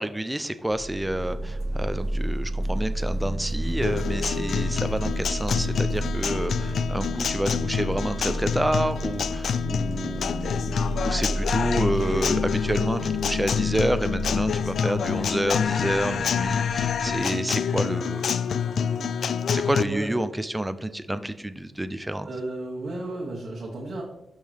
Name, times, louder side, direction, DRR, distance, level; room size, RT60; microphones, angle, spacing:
voice 1, 0.0-18.6 19.5-22.3, right 1 dB, 5° right, 11 dB, 0.5 m, -29 dB
sound 1, 0.7-17.3, right 1 dB, 70° right, 0.9 m, -31 dB
Guitar, 3.8-19.8, left 7 dB, 70° left, 0.3 m, -27 dB
voice 2, 22.2-24.0, right 2 dB, 45° right, -2 dB, 1.3 m, -33 dB
11.5 x 5.5 x 3.4 m, 0.91 s
wide cardioid pair, 170°, 0 cm